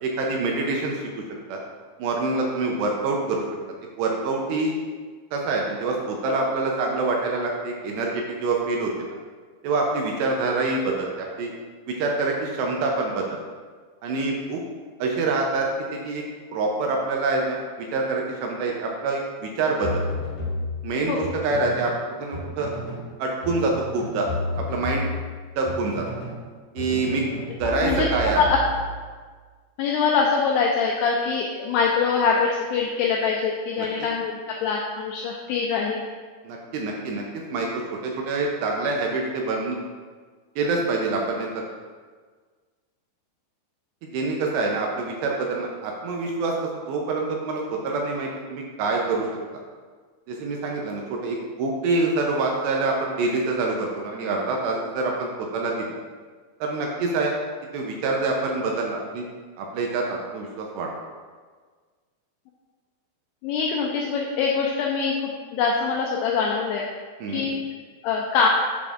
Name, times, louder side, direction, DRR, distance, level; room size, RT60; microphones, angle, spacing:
voice 1, 0.0-1.1 1.5-1.6 2.0-3.4 4.0-4.7 5.3-8.9 9.6-11.5 11.9-13.4 14.0-14.6 15.0-16.2 16.5-20.1 20.8-21.9 22.2-22.7 23.2-24.3 24.7-25.0 25.6-26.1 26.8-27.2 27.6-28.4 33.8-33.9 36.4-37.7 38.0-39.8 40.6-41.5 44.0-46.6 46.9-49.3 50.3-55.9 56.6-57.3 57.7-59.3 59.6-60.9 67.2-67.5, right 3 dB, 80° right, 0 dB, 2.6 m, -26 dB
sound 1, 19.8-22.0 22.3-23.1 23.4-26.4 26.8-29.2, left 1 dB, 65° left, 1.6 m, -32 dB
voice 2, 29.8-36.0 63.4-66.9 67.3-67.6 68.0-68.5, left 5 dB, 90° left, -1 dB, 2.3 m, -23 dB
8.2 x 6.8 x 2.4 m, 1.5 s
omnidirectional pair, 5.4 m